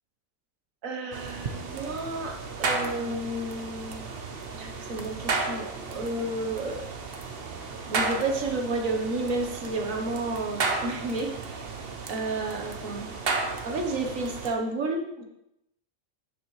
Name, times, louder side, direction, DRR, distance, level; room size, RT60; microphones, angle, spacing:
voice 1, 0.8-4.2 4.5-6.8 7.9-11.7 12.1-13.1 13.6-15.2, right 2 dB, 75° right, 2 dB, 1.7 m, -31 dB
sound 1, 1.1-14.5, right 4 dB, 50° right, 1.0 m, -33 dB
10.5 x 7.0 x 3.3 m, 0.84 s
omnidirectional pair, 1.4 m